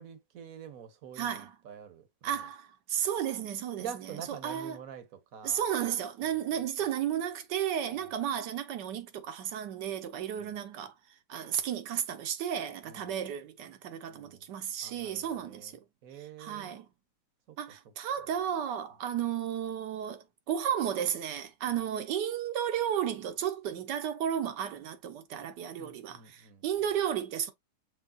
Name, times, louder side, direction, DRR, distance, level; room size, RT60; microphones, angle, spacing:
voice 1, 0.0-2.5 3.8-5.7 6.3-6.9 7.9-8.1 10.3-10.6 12.8-13.1 14.1-14.5 14.8-16.8 17.5-17.6 21.6-21.7 25.7-26.6, right 8 dB, 60° right, 1.2 m, -47 dB
voice 2, 1.2-1.5 2.2-4.2 4.4-4.8 5.4-10.9 11.3-15.8 16.4-16.9 17.6-27.5, right 9 dB, 80° right, 1.4 m, -33 dB
7.0 x 3.2 x 2.3 m
omnidirectional pair, 1.8 m